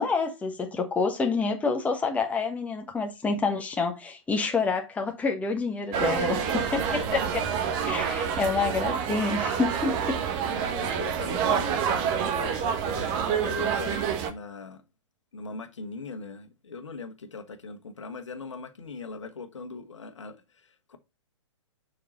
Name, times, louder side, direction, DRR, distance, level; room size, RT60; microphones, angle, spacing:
voice 1, 0.0-6.4 6.7-7.4 7.9-10.2, left 4 dB, 10° left, 1.2 m, -28 dB
sound 1, 5.9-14.3, right 7 dB, 30° right, 1.3 m, -28 dB
voice 2, 6.0-7.5 10.4-14.8 15.3-21.0, left 4 dB, 65° left, 1.4 m, -40 dB
7.3 x 5.8 x 4.2 m
figure-of-eight pair, 115°, 16 cm